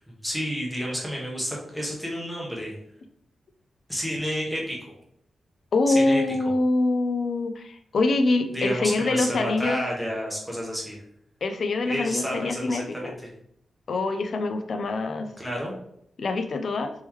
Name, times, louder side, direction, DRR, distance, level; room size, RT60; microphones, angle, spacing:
voice 1, 0.1-2.7 3.9-4.8 5.9-6.2 8.5-11.0 11.8-13.1 15.4-15.7, equal, ahead, -3 dB, 1.0 m, -30 dB
voice 2, 5.7-9.8 11.4-13.1 13.9-15.3 16.2-16.9, left 2 dB, 55° left, 7 dB, 0.4 m, -24 dB
3.6 x 3.0 x 3.1 m, 0.71 s
wide cardioid pair, 140°, 0 cm